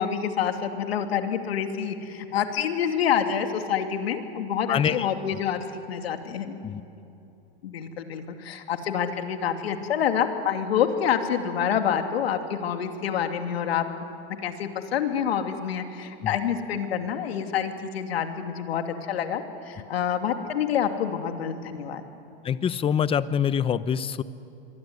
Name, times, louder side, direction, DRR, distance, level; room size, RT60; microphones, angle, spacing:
voice 1, 0.0-5.6 5.9-6.5 7.6-13.8 14.4-22.0, left 8 dB, 80° left, 5 dB, 2.8 m, -27 dB
voice 2, 4.7-5.1 5.3-5.4 6.6-6.8 16.2-16.3 22.4-24.2, left 8 dB, 20° left, 15 dB, 0.8 m, -25 dB
26.0 x 23.5 x 9.6 m, 2.8 s
supercardioid pair, 130°, 30 cm